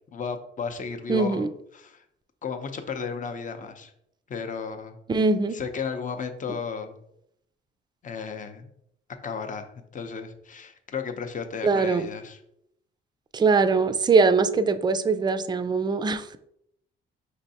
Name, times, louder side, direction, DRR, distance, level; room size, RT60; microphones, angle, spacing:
voice 1, 0.1-2.0 2.4-3.9 4.3-5.0 5.5-7.0 8.0-8.7 9.2-12.4, left 5 dB, 40° left, 7 dB, 0.6 m, -34 dB
voice 2, 1.1-1.5 5.1-5.6 11.6-12.1 13.3-16.3, right 4 dB, 20° right, 11 dB, 0.3 m, -22 dB
5.4 x 3.2 x 2.7 m, 0.77 s
cardioid pair, 90°, 20 cm